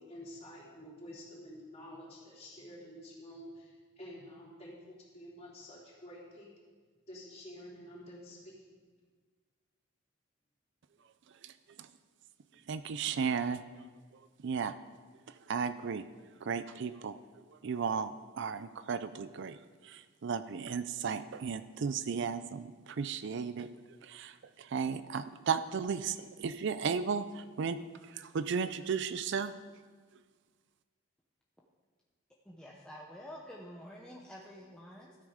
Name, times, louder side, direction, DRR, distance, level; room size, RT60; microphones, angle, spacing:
voice 1, 0.0-6.5 7.1-8.7 12.5-12.6, equal, 30° left, -6 dB, 3.5 m, -49 dB
voice 2, 12.7-13.6 14.4-14.7 15.3-16.1 16.4-17.1 17.5-23.7 24.0-27.8 28.1-29.5, right 6 dB, 60° right, 13 dB, 0.4 m, -35 dB
voice 3, 32.4-35.1, equal, 5° left, -3 dB, 0.8 m, -48 dB
13.0 x 9.0 x 5.0 m, 1.5 s
head